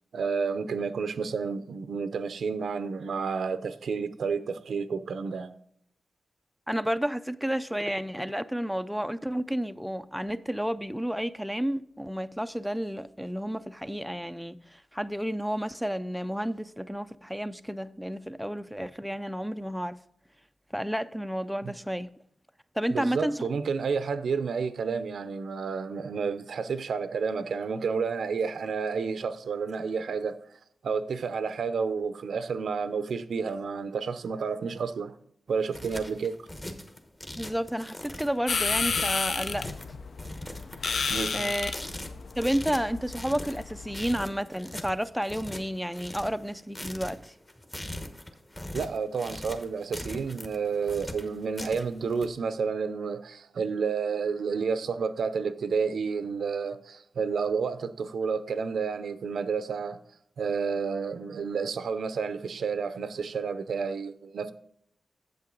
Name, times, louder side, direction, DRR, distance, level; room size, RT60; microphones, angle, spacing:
voice 1, 0.1-5.5 21.6-21.8 22.9-30.4 30.8-35.1 35.5-36.4 41.1-41.5 48.7-60.0 60.4-64.5, right 5 dB, 85° right, 0.5 m, -30 dB
voice 2, 6.7-20.0 20.7-22.1 22.8-23.4 37.4-39.7 41.3-41.8 42.4-47.3, equal, ahead, 0.3 m, -31 dB
sound 1, 35.5-52.3, left 1 dB, 20° left, 1.0 m, -41 dB
sound 2, 38.5-44.1, left 5 dB, 65° left, 0.5 m, -32 dB
8.5 x 7.5 x 3.8 m
wide cardioid pair, 115°, 0 cm